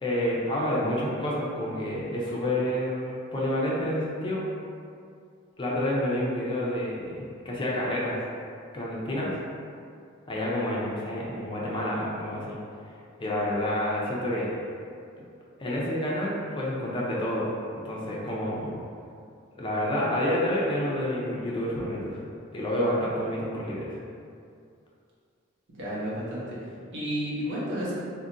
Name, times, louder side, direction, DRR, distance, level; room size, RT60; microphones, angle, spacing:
voice 1, 0.0-4.5 5.6-8.2 8.7-9.3 10.3-12.6 13.2-14.5 15.6-18.8 19.5-22.2 22.5-23.9, left 1 dB, 25° left, -5 dB, 0.4 m, -29 dB
voice 2, 25.7-26.6 26.9-27.9, equal, 60° right, -8 dB, 0.9 m, -31 dB
2.4 x 2.1 x 3.7 m, 2.4 s
head